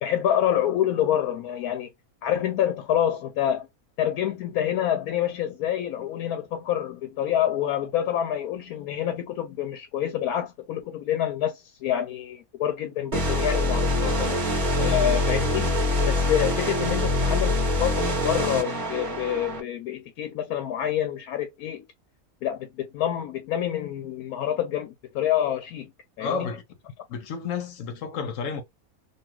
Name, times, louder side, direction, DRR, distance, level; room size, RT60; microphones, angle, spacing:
voice 1, 0.0-1.9 2.2-3.7 4.0-14.1 14.8-15.7 16.1-21.8 22.4-25.9 26.2-26.5, left 10 dB, 90° left, 1.1 m, -27 dB
sound 1, 13.1-19.6, left 1 dB, 35° right, 1.0 m, -24 dB
voice 2, 14.0-14.5 14.7-15.0 26.2-26.6 27.1-28.6, left 5 dB, 70° left, 1.0 m, -32 dB
2.6 x 2.3 x 2.9 m
omnidirectional pair, 1.5 m